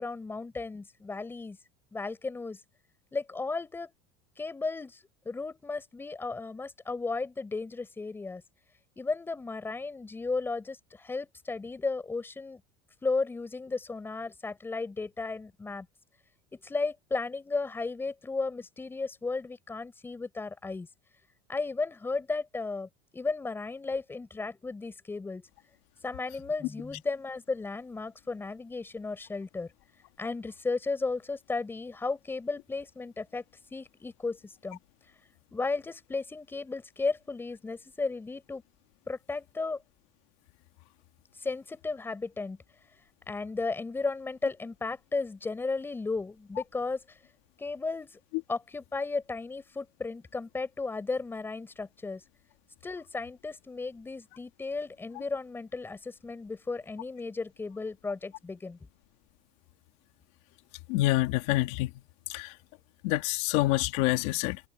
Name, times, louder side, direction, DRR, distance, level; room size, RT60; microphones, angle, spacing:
voice 1, 0.0-1.6 1.9-2.6 3.1-3.9 4.4-5.0 5.2-8.4 9.0-12.6 13.0-15.9 16.5-20.9 21.5-25.5 26.0-29.7 30.2-33.4 33.7-34.8 35.5-38.6 39.1-39.8 41.4-42.6 43.3-47.2 47.6-48.2 48.5-52.2 52.8-58.8, left 3 dB, 15° left, 5.1 m, -34 dB
voice 2, 60.9-61.9 62.3-62.5 63.0-64.6, left 18 dB, 70° left, 2.5 m, -27 dB
supercardioid pair, 135°, 17 cm